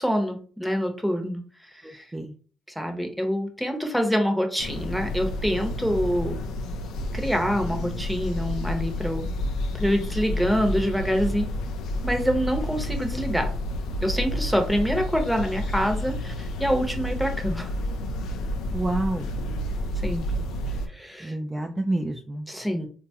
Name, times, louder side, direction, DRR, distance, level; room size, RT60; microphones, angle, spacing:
voice 1, 0.0-1.4 1.8-2.1 2.8-6.4 7.1-9.3 9.7-11.5 12.0-13.5 14.0-17.7 20.0-20.3 20.9-21.3 22.5-22.9, equal, ahead, 4 dB, 0.8 m, -26 dB
voice 2, 1.8-2.3 18.7-19.4 21.2-22.5, right 2 dB, 15° right, 3 dB, 0.3 m, -29 dB
sound 1, 4.6-20.9, left 1 dB, 85° left, 0.4 m, -30 dB
3.8 x 2.2 x 2.8 m, 0.42 s
cardioid pair, 90°, 0 cm